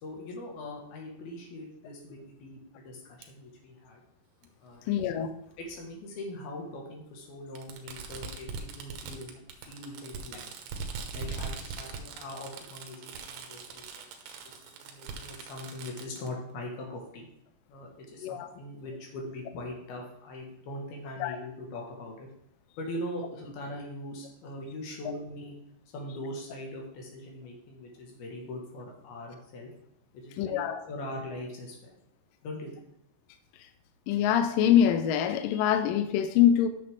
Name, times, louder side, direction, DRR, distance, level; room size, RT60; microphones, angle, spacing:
voice 1, 0.0-4.0 4.6-5.0 5.6-9.4 9.7-10.7 11.1-14.1 14.8-17.3 17.7-22.3 22.8-25.5 25.9-29.7 30.1-31.9 32.4-32.8, left 1 dB, 65° left, 3.6 m, -41 dB
Fireworks, 3.2-3.3 4.4-4.5 5.8-5.9 7.6-16.3, right 4 dB, 80° right, 2.9 m, -41 dB
voice 2, 4.9-5.3 18.2-18.5 21.2-21.4 30.4-30.8 34.1-36.7, left 10 dB, 90° left, 1.9 m, -24 dB
10.0 x 6.6 x 3.7 m
omnidirectional pair, 4.8 m